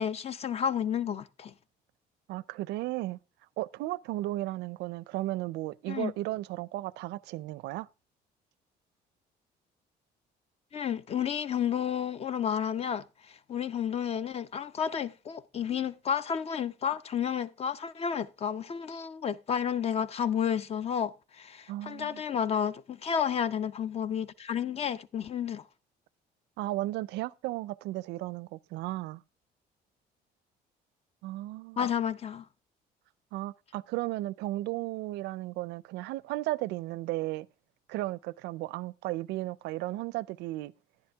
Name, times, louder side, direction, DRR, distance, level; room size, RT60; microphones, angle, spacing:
voice 1, 0.0-1.5 5.9-6.1 10.7-25.6 31.8-32.4, left 8 dB, 35° left, 0.6 m, -31 dB
voice 2, 2.3-3.2 3.6-7.9 21.7-22.2 26.6-29.2 31.2-31.9 33.3-37.5 37.9-40.7, right 17 dB, 85° right, 0.4 m, -35 dB
10.5 x 10.5 x 3.4 m
cardioid pair, 110°, 17 cm